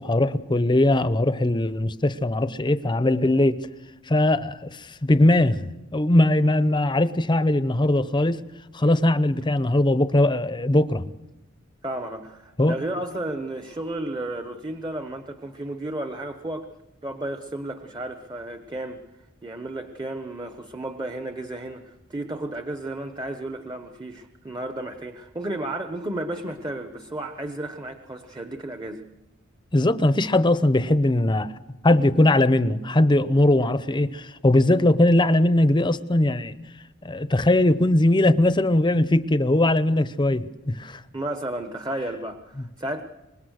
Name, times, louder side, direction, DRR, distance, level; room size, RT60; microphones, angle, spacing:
voice 1, 0.0-3.6 4.1-8.4 8.7-11.1 12.6-12.8 29.7-31.5 31.8-36.5 37.0-41.0 42.6-42.7, left 1 dB, 20° left, 0.8 m, -20 dB
voice 2, 11.8-16.7 17.0-19.0 19.4-29.0 41.1-43.0, right 1 dB, 20° right, 1.1 m, -33 dB
25.0 x 21.0 x 6.5 m
head